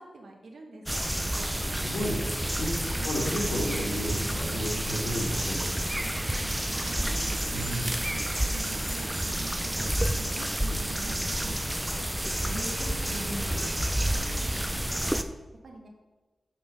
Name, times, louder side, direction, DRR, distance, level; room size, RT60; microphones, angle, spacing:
voice 1, 0.0-1.9 2.8-3.0 6.2-7.7 8.5-11.5 12.7-13.5 14.1-15.9, right 2 dB, 60° right, 1 dB, 1.6 m, -48 dB
sound 1, 0.9-15.2, right 1 dB, 10° right, 0.4 m, -30 dB
voice 2, 1.6-5.6 7.5-7.9 11.6-13.7, equal, 90° left, -2 dB, 2.4 m, -34 dB
sound 2, 3.0-11.7, right 6 dB, 85° right, 0.4 m, -46 dB
7.4 x 5.9 x 5.1 m, 1.2 s
wide cardioid pair, 130°, 0 cm